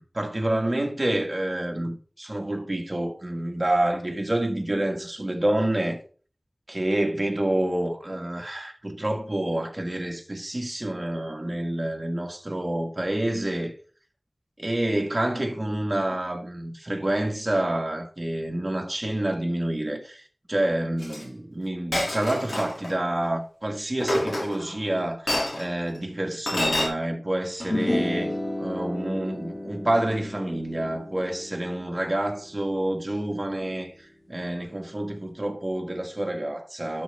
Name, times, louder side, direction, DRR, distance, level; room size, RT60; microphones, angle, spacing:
voice 1, 0.0-6.0 6.7-13.7 14.6-20.2 20.5-37.0, right 1 dB, 35° right, 2.1 m, -28 dB
Chink clink, 21.0-21.2 21.9-22.9 24.0-24.8 25.3-25.6 26.5-26.9, left 1 dB, 80° left, 2.9 m, -27 dB
sound 1, 27.6-34.1, left 1 dB, 45° left, 2.0 m, -33 dB
12.0 x 5.6 x 3.7 m
wide cardioid pair, 45°, 0 cm